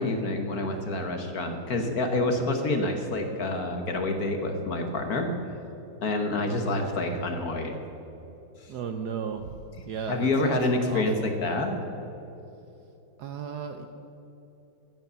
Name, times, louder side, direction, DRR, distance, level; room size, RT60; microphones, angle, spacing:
voice 1, 0.0-5.3 6.0-7.7 10.1-11.8, left 2 dB, 50° left, 5 dB, 1.4 m, -27 dB
voice 2, 8.7-10.6 10.9-11.3 13.2-13.9, right 6 dB, 65° right, 7 dB, 1.1 m, -35 dB
14.5 x 7.9 x 6.9 m, 2.9 s
omnidirectional pair, 2.2 m